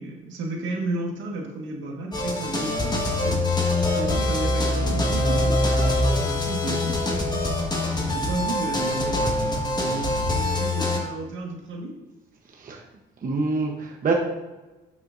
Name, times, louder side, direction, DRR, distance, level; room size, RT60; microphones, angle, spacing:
voice 1, 0.0-3.6 3.9-5.9 6.2-7.4 7.9-11.9, right 2 dB, 75° right, 0 dB, 1.7 m, -32 dB
sound 1, 2.1-11.0, left 1 dB, 20° left, 1.6 m, -24 dB
voice 2, 12.5-12.8 13.2-14.1, right 4 dB, 45° right, 1 dB, 1.0 m, -26 dB
9.9 x 6.0 x 2.6 m, 1.1 s
cardioid pair, 90°, 20 cm